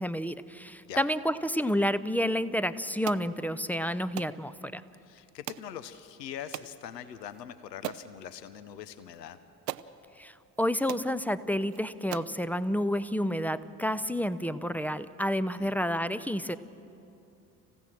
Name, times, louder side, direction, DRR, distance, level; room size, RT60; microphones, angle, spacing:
voice 1, 0.0-4.8 10.2-16.6, equal, 5° left, 14 dB, 0.5 m, -30 dB
sound 1, 3.1-3.3 4.2-4.4 5.5-5.7 6.5-6.7 7.3-7.4 7.8-8.1 9.1-9.2 9.7-9.9 10.6-10.7 10.9-11.1 11.7-11.8 12.1-12.4, right 15 dB, 75° right, 0.6 m, -38 dB
voice 2, 5.0-9.4 15.6-15.7, left 9 dB, 80° left, 13 dB, 0.8 m, -42 dB
26.0 x 15.5 x 7.3 m, 2.7 s
figure-of-eight pair, 50°, 49 cm